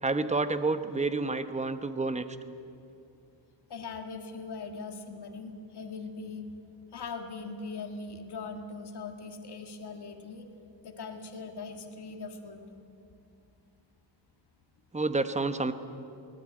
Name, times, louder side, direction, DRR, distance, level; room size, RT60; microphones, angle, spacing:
voice 1, 0.0-2.2 14.9-15.7, right 3 dB, 15° right, 10 dB, 1.1 m, -29 dB
voice 2, 3.7-6.5 6.9-10.5 10.8-12.7, left 4 dB, 65° left, 4 dB, 2.0 m, -40 dB
24.0 x 19.0 x 8.9 m, 2.6 s
wide cardioid pair, 140°, 43 cm